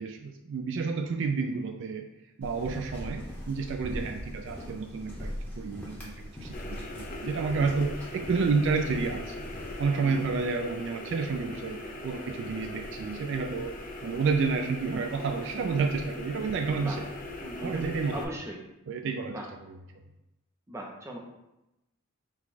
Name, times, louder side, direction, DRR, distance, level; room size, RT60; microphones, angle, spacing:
voice 1, 0.0-2.1 2.4-9.5 9.8-13.8 14.0-17.0 17.6-18.3 18.9-19.4, right 4 dB, 60° right, 5 dB, 0.3 m, -30 dB
sound 1, 2.4-9.9, equal, 10° left, 0.9 m, -41 dB
sound 2, 6.5-18.2, left 1 dB, 40° left, 0.4 m, -40 dB
voice 2, 17.4-18.6 19.3-19.5 20.7-21.2, right 1 dB, 15° right, -1 dB, 0.6 m, -39 dB
4.6 x 2.3 x 4.0 m, 0.91 s
head